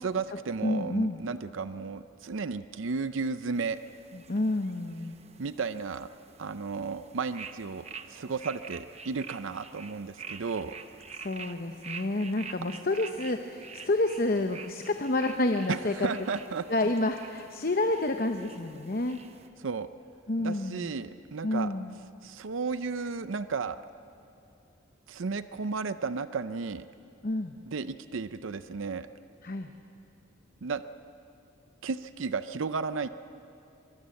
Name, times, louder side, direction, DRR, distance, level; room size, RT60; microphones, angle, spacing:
voice 1, 0.0-3.8 5.4-6.1 6.4-10.7 15.7-16.9 19.6-19.9 20.4-21.7 22.2-23.8 25.1-26.9 27.6-29.1 30.6-30.8 31.8-33.1, right 4 dB, 75° right, 12 dB, 0.6 m, -33 dB
voice 2, 0.6-1.2 4.1-5.1 11.2-16.1 16.7-19.2 20.3-20.9 21.4-21.9 27.2-27.5 29.4-29.7, left 2 dB, 45° left, 6 dB, 0.8 m, -29 dB
sound 1, 3.5-19.5, right 5 dB, 30° right, 0.9 m, -47 dB
24.0 x 21.5 x 7.6 m, 2.7 s
head